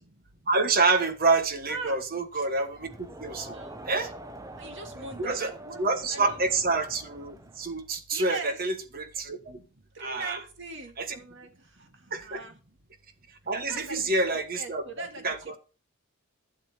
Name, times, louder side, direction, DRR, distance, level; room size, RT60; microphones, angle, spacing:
voice 1, 0.5-2.9 3.2-3.6 3.9-4.1 5.2-5.5 5.8-9.6 10.0-10.4 11.0-11.2 12.1-12.4 13.5-15.6, right 3 dB, 45° right, 1.3 m, -27 dB
voice 2, 1.7-2.0 2.3-2.5 3.3-4.2 4.6-5.8 6.1-6.4 8.1-8.6 9.9-12.5 13.5-15.6, right 3 dB, 60° right, 2.2 m, -41 dB
Crowd, 2.7-7.8, right 1 dB, 15° right, 0.7 m, -45 dB
12.0 x 6.5 x 4.4 m
head